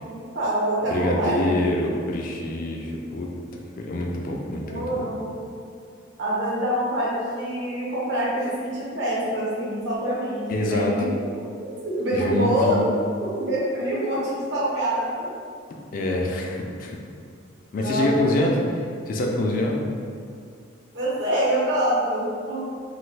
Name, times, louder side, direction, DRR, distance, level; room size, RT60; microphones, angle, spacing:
voice 1, 0.0-1.6 4.6-5.3 6.2-11.1 11.6-12.9 13.2-15.3 17.8-18.1 18.4-18.6 20.9-22.7, right 1 dB, 60° right, -7 dB, 0.9 m, -26 dB
voice 2, 0.9-3.3 3.5-5.0 10.5-10.9 12.1-12.8 15.9-17.0 17.7-18.6 19.1-19.8, left 1 dB, 45° left, 0 dB, 0.3 m, -25 dB
3.1 x 2.2 x 3.2 m, 2.3 s
head